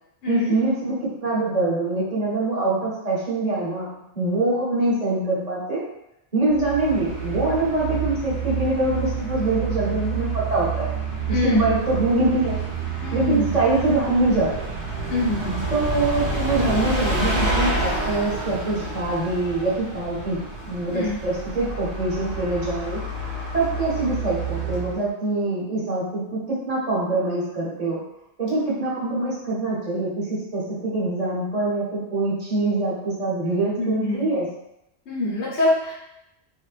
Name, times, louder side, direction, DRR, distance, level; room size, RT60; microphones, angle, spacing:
voice 1, 0.3-5.8 6.3-10.9 11.3-12.6 13.1-14.7 15.7-23.0 23.5-28.0 28.4-34.5, right 2 dB, 40° right, -7 dB, 0.9 m, -24 dB
Bus, 6.5-25.1, right 3 dB, 75° right, 1.1 m, -28 dB
voice 2, 11.3-11.6 13.0-13.5 15.1-15.6 20.9-21.2 33.8-34.2 35.1-35.9, left 2 dB, 80° left, -5 dB, 1.1 m, -24 dB
2.5 x 2.1 x 2.4 m, 0.82 s
omnidirectional pair, 1.2 m